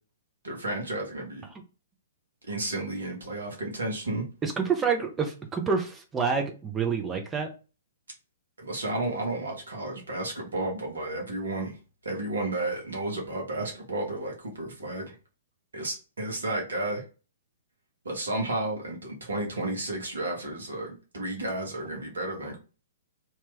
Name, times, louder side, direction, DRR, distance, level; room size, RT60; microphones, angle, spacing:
voice 1, 0.4-1.5 2.5-4.2 8.6-11.8 12.0-15.1 15.7-17.0 18.0-22.6, right 2 dB, 65° right, 0 dB, 1.2 m, -32 dB
voice 2, 4.4-7.5, right 5 dB, 15° right, 3 dB, 0.7 m, -28 dB
3.0 x 2.9 x 3.4 m, 0.33 s
figure-of-eight pair, 115°, 0 cm